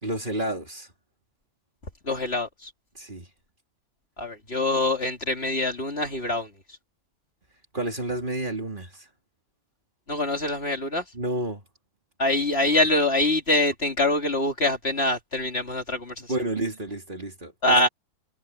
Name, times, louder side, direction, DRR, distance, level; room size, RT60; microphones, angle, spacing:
voice 1, 0.0-0.9 2.9-3.3 7.7-9.1 11.1-11.6 16.3-17.7, right 1 dB, 35° right, 3.0 m, -30 dB
voice 2, 2.0-2.7 4.2-6.5 10.1-11.0 12.2-16.3 17.6-17.9, left 2 dB, 40° left, 3.0 m, -24 dB
omnidirectional pair, 1.6 m